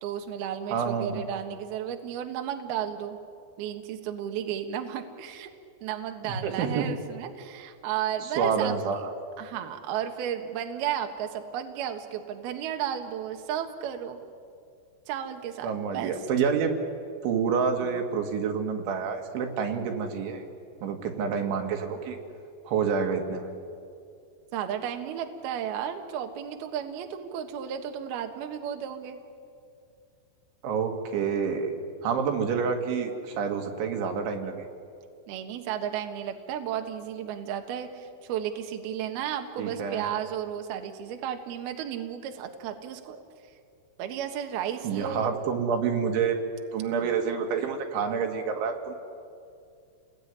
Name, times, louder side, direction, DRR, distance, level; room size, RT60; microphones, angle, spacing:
voice 1, 0.0-3.2 3.6-5.5 5.8-8.8 9.4-14.2 15.1-16.1 24.5-29.2 35.3-43.2 44.0-45.3, right 9 dB, 65° right, 5 dB, 3.1 m, -33 dB
voice 2, 0.7-1.2 6.2-6.9 8.2-9.1 15.6-16.7 17.2-20.4 20.8-22.2 22.7-23.5 30.6-34.7 39.6-40.1 44.8-46.4 46.7-48.9, right 6 dB, 90° right, 3 dB, 4.6 m, -28 dB
29.5 x 20.5 x 9.8 m, 2.4 s
omnidirectional pair, 5.2 m